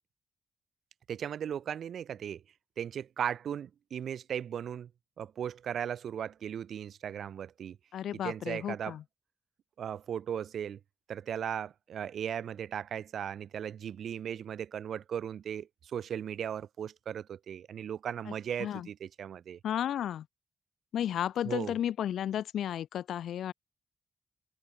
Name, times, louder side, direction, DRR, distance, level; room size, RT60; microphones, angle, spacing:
voice 1, 1.1-2.4 2.8-4.9 5.2-7.8 8.1-9.0 9.8-10.8 11.1-19.6 21.4-21.7, right 9 dB, 80° right, 1.5 m, -37 dB
voice 2, 7.9-9.0 18.3-18.4 18.6-18.9 19.6-20.2 20.9-23.5, left 10 dB, 85° left, 1.3 m, -33 dB
cardioid pair, 60°, 0 cm